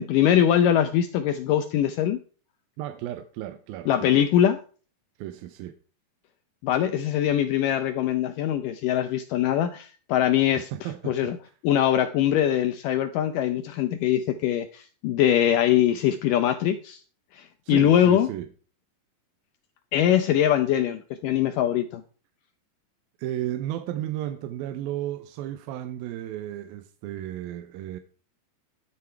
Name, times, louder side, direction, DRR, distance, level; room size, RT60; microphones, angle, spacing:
voice 1, 0.0-2.2 3.9-4.6 6.6-11.4 11.6-17.0 17.3-18.3 19.9-22.0, left 10 dB, 80° left, 1.9 m, -22 dB
voice 2, 2.8-4.2 5.2-5.8 10.6-11.3 17.6-18.5 23.2-28.0, right 12 dB, 80° right, 2.4 m, -34 dB
12.5 x 10.5 x 4.6 m
omnidirectional pair, 4.5 m